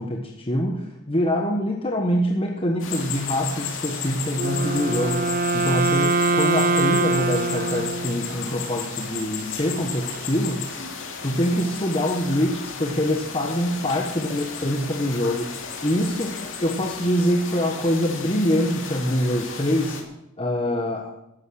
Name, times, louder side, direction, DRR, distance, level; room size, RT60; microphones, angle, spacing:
voice 1, 0.0-10.6 11.2-14.0 14.3-20.0 20.4-21.1, equal, 25° left, 1 dB, 1.2 m, -24 dB
sound 1, 2.8-20.0, left 5 dB, 60° left, 2.7 m, -34 dB
Wind instrument woodwind instrument, 4.3-8.6, right 2 dB, 45° right, 0.9 m, -23 dB
14.5 x 11.5 x 6.5 m, 0.85 s
head